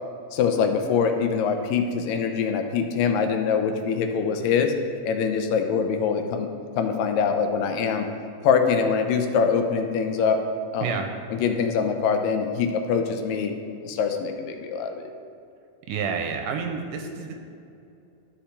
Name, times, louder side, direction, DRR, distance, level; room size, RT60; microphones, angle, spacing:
voice 1, 0.3-4.7 5.0-6.5 6.8-8.1 8.4-10.4 10.7-11.0 11.3-13.5 13.8-15.1, left 6 dB, 80° left, 5 dB, 2.3 m, -24 dB
voice 2, 15.9-17.3, right 6 dB, 80° right, 4 dB, 2.1 m, -29 dB
12.5 x 5.6 x 3.4 m, 2.6 s
omnidirectional pair, 4.0 m